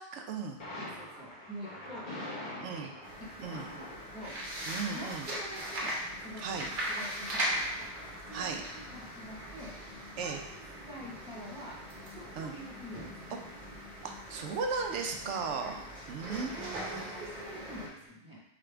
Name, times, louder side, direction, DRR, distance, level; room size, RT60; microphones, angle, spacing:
voice 1, 0.0-0.6 2.6-2.9 3.4-3.7 4.7-5.3 6.4-6.7 8.3-8.6 10.2-10.4 12.3-12.5 13.5-13.7 14.0-15.8 16.1-17.3, right 5 dB, 75° right, 4 dB, 0.9 m, -36 dB
Thunder, 0.6-18.1, left 1 dB, 45° left, 1.3 m, -50 dB
voice 2, 0.8-2.9 3.4-4.3 4.9-6.4 7.0-7.9 8.3-9.7 10.2-10.6 10.9-11.8 12.1-13.1 15.8-16.0 17.0-18.4, equal, 5° right, -6 dB, 1.1 m, -47 dB
sound 1, 3.0-17.9, equal, 50° right, 1.0 m, -40 dB
4.1 x 3.7 x 3.4 m, 0.82 s
omnidirectional pair, 1.2 m